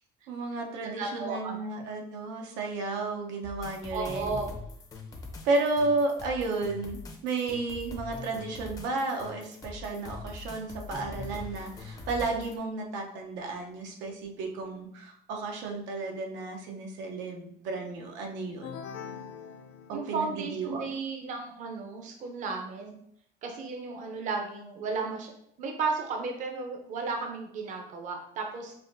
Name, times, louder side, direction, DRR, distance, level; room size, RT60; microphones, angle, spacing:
voice 1, 0.3-4.3 5.4-18.7 19.9-20.8, right 3 dB, 85° right, 1 dB, 0.8 m, -32 dB
voice 2, 0.8-1.6 3.9-4.5 19.9-22.9 23.4-25.3 25.6-28.8, right 4 dB, 45° right, 3 dB, 0.6 m, -34 dB
sound 1, 3.4-12.6, left 3 dB, 20° left, 0.5 m, -42 dB
sound 2, 18.6-20.5, left 7 dB, 80° left, 0.4 m, -42 dB
5.5 x 2.5 x 2.6 m, 0.71 s
cardioid pair, 145°, 18 cm